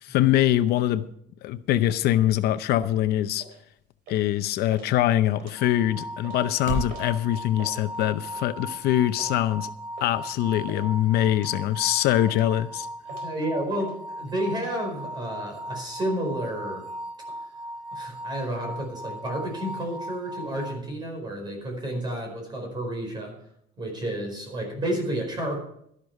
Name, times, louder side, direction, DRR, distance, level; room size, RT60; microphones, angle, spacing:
voice 1, 0.0-1.0 1.4-3.4 4.1-9.7 10.0-12.9, left 13 dB, 65° left, 0.7 m, -23 dB
sound 1, 0.8-7.0, right 3 dB, 45° right, 4.5 m, -40 dB
sound 2, 3.4-3.6 4.1-4.4 4.7-4.9 5.3-5.9 6.2-6.4 6.9-7.1 7.4-7.8 8.3-8.6 9.2-9.4 10.0-10.2 10.4-10.8 11.3-11.5 12.0-12.6 13.0-13.4 13.8-14.0 14.2-14.7, right 3 dB, 85° right, 4.4 m, -46 dB
sound 3, 5.6-20.7, right 1 dB, 5° right, 1.4 m, -37 dB
voice 2, 13.2-16.8 17.9-23.3 23.8-25.6, right 1 dB, 25° right, 4.7 m, -31 dB
12.5 x 11.5 x 4.7 m
cardioid pair, 175°, 18 cm